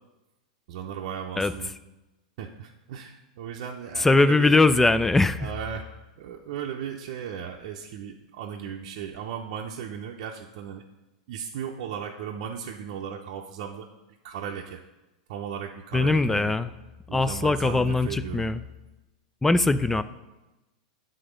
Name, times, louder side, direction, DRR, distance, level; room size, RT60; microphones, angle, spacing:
voice 1, 0.7-1.7 2.4-4.6 5.4-5.9 6.2-10.8 11.3-13.9 14.2-14.8 15.3-16.5 17.1-18.4, right 8 dB, 65° right, 0 dB, 0.6 m, -36 dB
voice 2, 4.0-5.5 15.9-16.7 17.1-18.6 19.4-20.0, left 3 dB, 10° left, 13 dB, 0.3 m, -21 dB
9.6 x 3.8 x 5.0 m, 1.0 s
hypercardioid pair, 115°, 4 cm